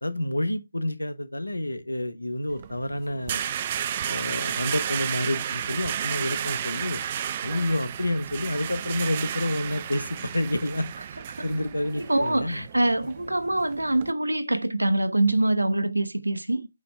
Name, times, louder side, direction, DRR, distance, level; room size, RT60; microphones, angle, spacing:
voice 1, 0.0-3.4 4.1-7.0 7.4-10.9 11.4-12.6, left 1 dB, 80° left, 1.1 m, -29 dB
sound 1, 2.5-14.1, right 9 dB, 30° right, 0.5 m, -33 dB
voice 2, 12.0-16.7, right 1 dB, 80° right, 1.0 m, -24 dB
8.4 x 5.1 x 3.3 m
figure-of-eight pair, 145°, 0 cm